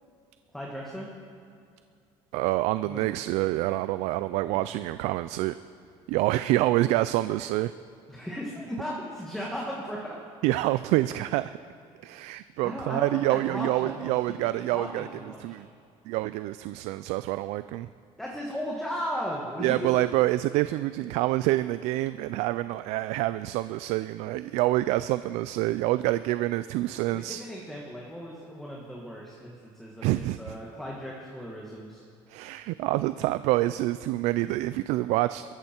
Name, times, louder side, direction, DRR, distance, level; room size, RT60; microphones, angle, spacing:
voice 1, 0.5-1.1 2.8-3.2 4.5-4.8 8.1-10.2 10.4-10.6 12.6-15.6 18.2-19.9 27.1-32.0, equal, 5° left, -3 dB, 1.7 m, -36 dB
voice 2, 2.3-5.5 6.1-7.7 10.4-11.6 12.0-15.1 15.4-15.7 16.1-17.9 19.6-27.4 30.0-30.5 32.3-35.4, right 17 dB, 75° right, 13 dB, 0.4 m, -27 dB
22.0 x 14.0 x 4.5 m, 2.4 s
cardioid pair, 155°, 11 cm